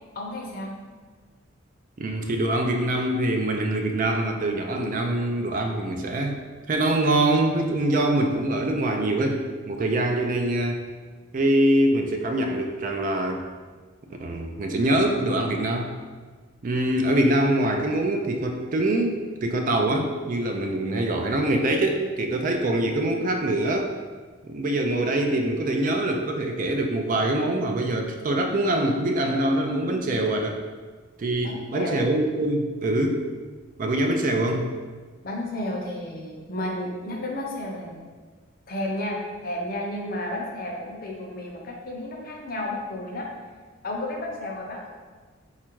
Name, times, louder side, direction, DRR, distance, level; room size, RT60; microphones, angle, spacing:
voice 1, 0.1-0.7 31.4-32.0 35.2-38.1 38.7-43.3 43.8-44.9, left 1 dB, 45° left, 0 dB, 0.6 m, -32 dB
voice 2, 2.0-6.4 6.7-10.8 11.3-13.4 14.2-16.0 16.6-19.1 19.4-23.9 24.4-30.6 31.2-33.2 33.8-34.7, right 1 dB, 40° right, 3 dB, 0.4 m, -24 dB
4.2 x 2.4 x 4.5 m, 1.4 s
head